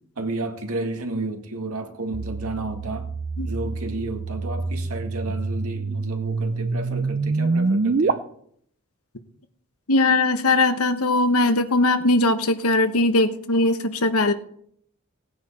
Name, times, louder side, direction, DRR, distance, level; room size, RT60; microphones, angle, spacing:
voice 1, 0.2-3.1 3.5-8.2, right 2 dB, 85° right, 2.0 m, -31 dB
sound 1, 2.1-8.1, right 3 dB, 45° right, 0.5 m, -26 dB
voice 2, 9.9-14.3, left 2 dB, 85° left, 1.1 m, -20 dB
17.5 x 9.3 x 4.3 m
head